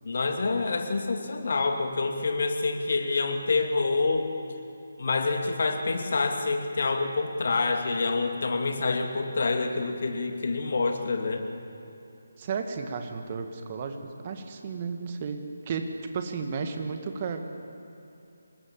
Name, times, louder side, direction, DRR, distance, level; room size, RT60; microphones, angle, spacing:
voice 1, 0.0-4.3 5.0-11.5, left 3 dB, 50° left, 4 dB, 2.5 m, -27 dB
voice 2, 12.4-17.4, right 5 dB, 30° right, 5 dB, 1.9 m, -33 dB
26.0 x 20.0 x 7.3 m, 2.9 s
figure-of-eight pair, 150°, 0 cm